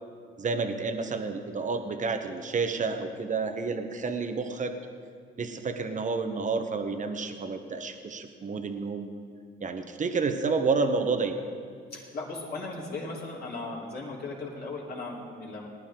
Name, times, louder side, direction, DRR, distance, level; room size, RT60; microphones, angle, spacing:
voice 1, 0.4-4.8 5.4-9.1 9.6-11.4, right 4 dB, 40° right, 7 dB, 1.1 m, -30 dB
voice 2, 11.9-15.7, left 3 dB, 50° left, -4 dB, 3.7 m, -37 dB
19.0 x 11.0 x 3.8 m, 2.3 s
cardioid pair, 90°, 20 cm